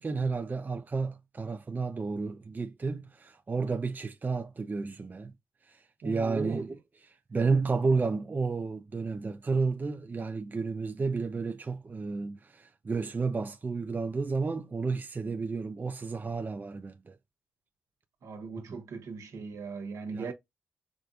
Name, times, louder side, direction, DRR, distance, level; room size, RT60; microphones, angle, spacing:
voice 1, 0.0-5.3 5.7-6.8 7.0-17.2 18.6-18.8 20.1-20.3, right 4 dB, 35° right, 0.6 m, -32 dB
voice 2, 6.0-6.6 18.2-20.3, right 4 dB, 70° right, 1.3 m, -38 dB
4.9 x 2.5 x 2.4 m
supercardioid pair, 50°, 6 cm